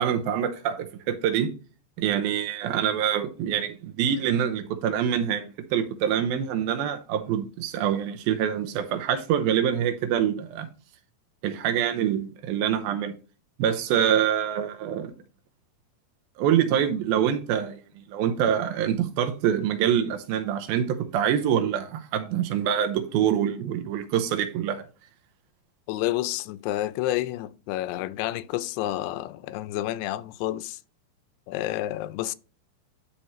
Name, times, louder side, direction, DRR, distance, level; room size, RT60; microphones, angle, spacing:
voice 1, 0.0-1.5 2.0-10.7 11.4-13.1 13.6-15.1 16.4-17.8 18.1-24.8, right 9 dB, 75° right, 2.5 m, -25 dB
voice 2, 25.9-30.8 31.5-32.3, left 15 dB, 85° left, 2.6 m, -29 dB
11.0 x 4.3 x 3.0 m
omnidirectional pair, 4.6 m